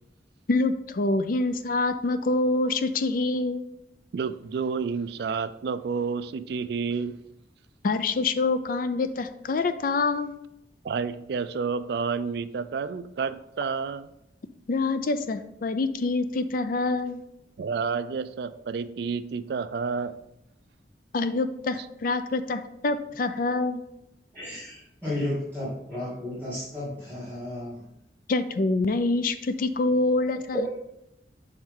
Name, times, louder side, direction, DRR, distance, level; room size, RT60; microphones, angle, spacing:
voice 1, 0.5-3.6 7.8-10.3 14.7-17.2 21.1-23.8 28.3-30.7, left 3 dB, 50° left, 10 dB, 0.4 m, -26 dB
voice 2, 4.1-7.2 10.8-14.1 17.6-20.2 21.8-21.9, right 5 dB, 60° right, 13 dB, 0.3 m, -30 dB
voice 3, 24.3-27.9 30.5-30.7, left 1 dB, 10° left, -11 dB, 2.3 m, -33 dB
6.4 x 4.5 x 3.7 m, 0.82 s
head